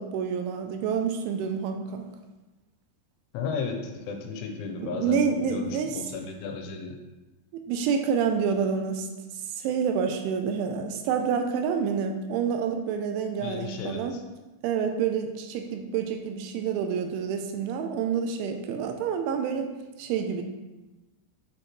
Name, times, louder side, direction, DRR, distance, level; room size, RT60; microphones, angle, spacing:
voice 1, 0.0-2.1 4.8-6.0 7.5-9.1 9.6-14.1 14.6-19.7 20.0-20.4, right 6 dB, 85° right, 5 dB, 3.0 m, -28 dB
voice 2, 3.3-7.0 13.4-14.2, left 5 dB, 85° left, 4 dB, 3.1 m, -34 dB
8.5 x 6.6 x 3.1 m, 1.1 s
omnidirectional pair, 5.6 m